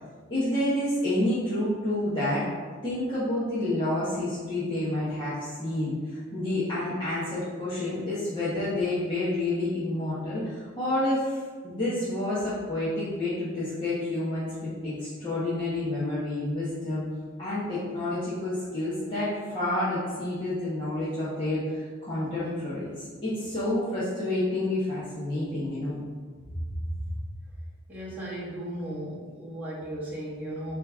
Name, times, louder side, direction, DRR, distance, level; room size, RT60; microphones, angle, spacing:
voice 1, 0.3-2.5 2.8-17.0 17.4-26.0, left 1 dB, 25° left, -12 dB, 1.4 m, -29 dB
voice 2, 27.9-30.8, right 1 dB, 10° right, -8 dB, 1.7 m, -36 dB
7.7 x 3.3 x 3.7 m, 1.5 s
head